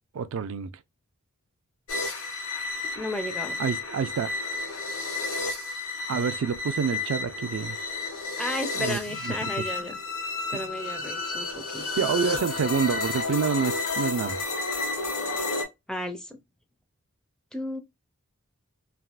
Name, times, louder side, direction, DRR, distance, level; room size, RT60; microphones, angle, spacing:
voice 1, 0.1-0.7 3.6-4.3 6.1-7.8 8.8-9.3 10.5-10.6 12.0-14.4, right 6 dB, 65° right, 0.4 m, -27 dB
sound 1, 1.9-15.6, left 3 dB, 70° left, 1.0 m, -31 dB
voice 2, 3.0-3.6 8.4-10.0 10.5-12.1 15.9-16.4 17.5-17.8, left 1 dB, 5° left, 0.4 m, -34 dB
3.4 x 2.3 x 2.3 m
head